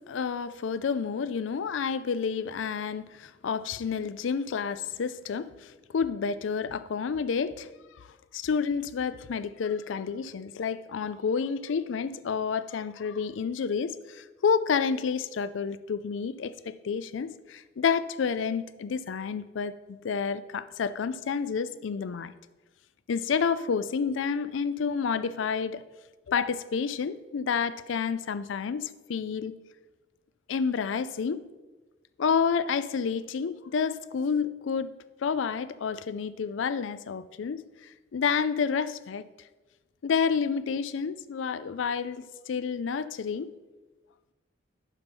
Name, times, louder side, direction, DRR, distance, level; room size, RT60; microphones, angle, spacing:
voice 1, 0.0-7.7 8.3-16.5 16.8-22.3 23.1-25.8 26.3-29.6 30.5-31.4 32.2-34.9 35.2-37.6 38.1-39.3 40.0-43.5, left 6 dB, 80° left, 14 dB, 0.4 m, -29 dB
7.3 x 5.4 x 5.4 m, 1.2 s
head